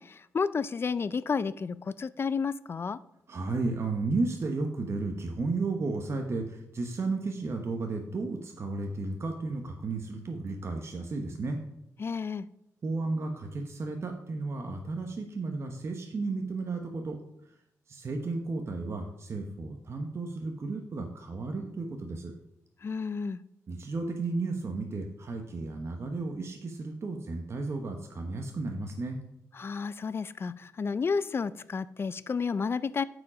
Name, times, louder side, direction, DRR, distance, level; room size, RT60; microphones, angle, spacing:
voice 1, 0.0-3.0 12.0-12.5 22.8-23.4 29.5-33.0, left 5 dB, 45° left, 17 dB, 0.4 m, -31 dB
voice 2, 3.3-11.6 12.8-17.2 17.9-22.3 23.7-29.2, right 3 dB, 50° right, 3 dB, 1.0 m, -33 dB
8.2 x 4.9 x 5.0 m, 0.79 s
cardioid pair, 70°, 6 cm